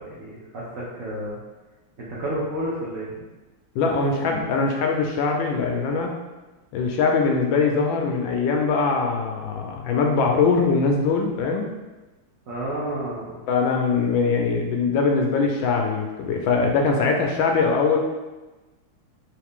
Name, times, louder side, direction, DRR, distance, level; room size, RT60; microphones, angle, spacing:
voice 1, 0.1-1.4 2.0-3.1 12.5-13.4, right 1 dB, 55° right, -8 dB, 1.0 m, -30 dB
voice 2, 3.7-6.2 6.7-11.7 13.5-18.0, left 4 dB, 75° left, 2 dB, 1.2 m, -22 dB
3.9 x 3.1 x 3.5 m, 1.1 s
omnidirectional pair, 2.3 m